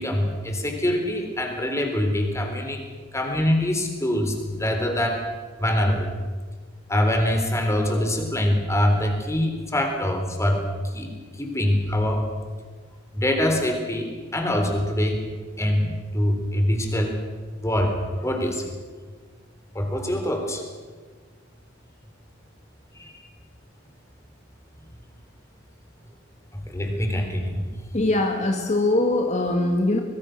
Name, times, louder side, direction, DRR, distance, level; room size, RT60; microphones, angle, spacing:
voice 1, 0.0-2.8 3.1-5.2 5.6-6.1 6.9-10.7 10.9-12.3 13.1-15.2 15.6-17.2 17.6-18.7 19.8-20.6 23.0-23.1 26.7-27.7, left 1 dB, 15° left, 4 dB, 3.9 m, -24 dB
voice 2, 27.9-30.0, left 2 dB, 35° left, 3 dB, 1.8 m, -22 dB
24.5 x 22.0 x 6.6 m, 1.5 s
head